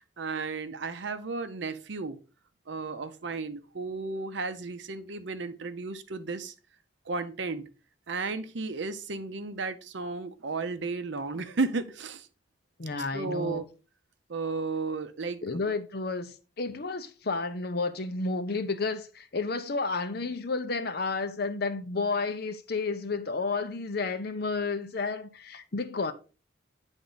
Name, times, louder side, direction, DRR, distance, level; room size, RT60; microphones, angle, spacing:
voice 1, 0.2-2.2 2.7-6.5 7.1-7.7 8.1-12.3 13.1-13.7 14.3-15.7, right 4 dB, 65° right, 0.7 m, -34 dB
voice 2, 12.8-13.6 15.4-26.1, left 3 dB, 50° left, 0.7 m, -31 dB
9.0 x 3.5 x 4.0 m
head